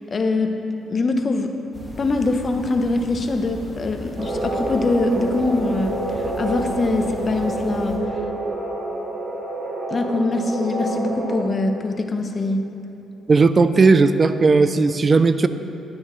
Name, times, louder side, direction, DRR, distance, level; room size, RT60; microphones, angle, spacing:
voice 1, 0.1-0.6 0.9-1.5 2.0-8.2 9.9-12.6, left 2 dB, 35° left, 6 dB, 0.7 m, -23 dB
sound 1, 1.7-8.0, equal, 5° left, 1.6 m, -38 dB
sound 2, 4.2-11.4, right 1 dB, 55° right, 2.1 m, -28 dB
voice 2, 13.3-15.5, right 4 dB, 35° right, 12 dB, 0.4 m, -16 dB
10.5 x 9.6 x 3.1 m, 2.9 s
cardioid pair, 90°, 0 cm